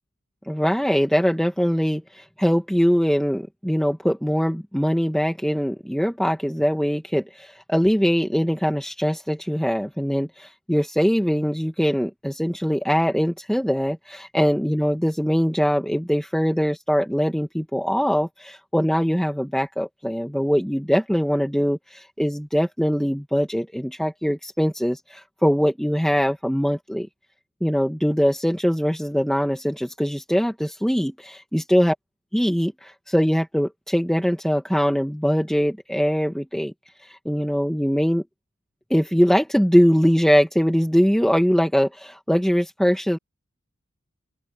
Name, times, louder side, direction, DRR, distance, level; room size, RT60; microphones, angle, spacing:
voice 1, 0.5-27.1 27.6-32.0 32.3-36.7 37.1-38.2 38.9-43.2, equal, ahead, 1.8 m, -22 dB
open air
head